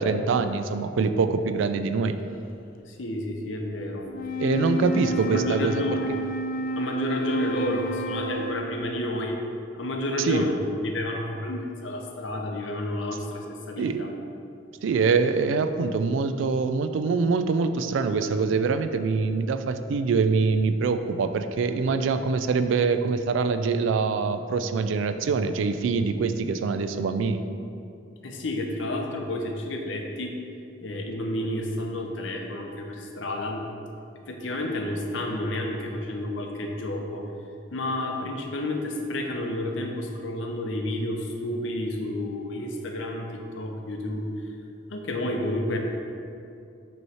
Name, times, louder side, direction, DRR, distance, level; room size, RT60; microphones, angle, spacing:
voice 1, 0.0-2.2 4.4-5.8 10.2-10.5 13.8-14.0 14.8-27.4, right 4 dB, 85° right, 9 dB, 0.3 m, -24 dB
voice 2, 2.9-4.1 5.1-6.1 6.7-9.4 9.7-14.1 28.2-30.4 30.8-33.6 34.3-37.2 37.7-44.3 44.9-45.8, left 1 dB, 90° left, 2 dB, 0.7 m, -30 dB
Wind instrument woodwind instrument, 4.0-8.8, equal, 50° left, 0.4 m, -30 dB
5.4 x 3.1 x 5.5 m, 2.6 s
head